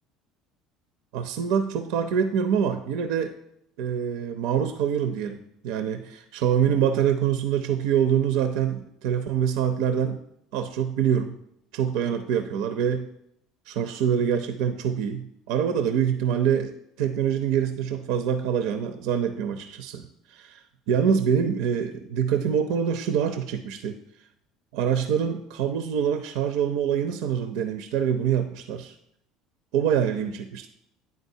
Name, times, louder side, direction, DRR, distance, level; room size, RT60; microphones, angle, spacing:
voice 1, 1.1-3.3 3.8-10.2 10.5-11.4 11.7-13.1 13.7-20.6 20.9-24.0 24.7-29.0 29.7-30.7, right 8 dB, 70° right, 7 dB, 0.4 m, -25 dB
9.5 x 3.7 x 2.7 m, 0.75 s
hypercardioid pair, 65°, 0 cm